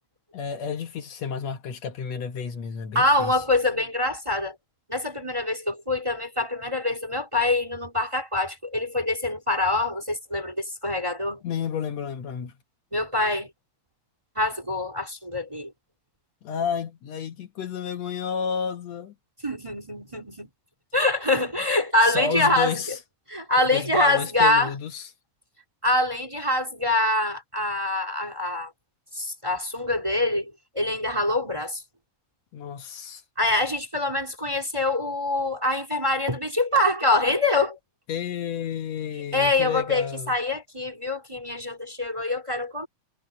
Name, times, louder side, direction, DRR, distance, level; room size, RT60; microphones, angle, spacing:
voice 1, 0.3-3.4 11.4-12.6 16.4-19.1 22.0-23.0 23.7-25.1 32.5-33.2 38.1-40.3, left 7 dB, 70° left, 2.3 m, -31 dB
voice 2, 2.9-4.6 4.9-11.4 12.9-13.5 14.3-15.7 19.4-20.5 20.9-23.0 23.3-24.7 25.8-28.7 29.1-31.8 33.4-37.8 39.3-42.9, left 2 dB, 10° right, 2.6 m, -25 dB
omnidirectional pair, 3.3 m